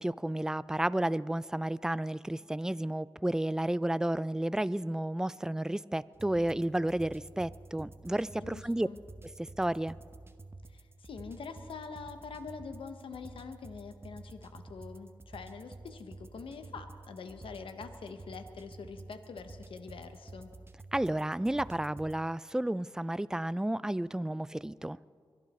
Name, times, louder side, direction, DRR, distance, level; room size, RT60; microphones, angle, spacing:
voice 1, 0.0-8.9 9.4-10.0 20.9-25.1, right 1 dB, 5° right, 18 dB, 0.3 m, -32 dB
sound 1, 6.1-22.2, right 2 dB, 25° right, 0.9 m, -50 dB
voice 2, 8.4-9.0 10.7-20.5, left 5 dB, 85° left, 8 dB, 1.0 m, -45 dB
23.0 x 11.5 x 4.2 m, 2.1 s
cardioid pair, 55°, 9 cm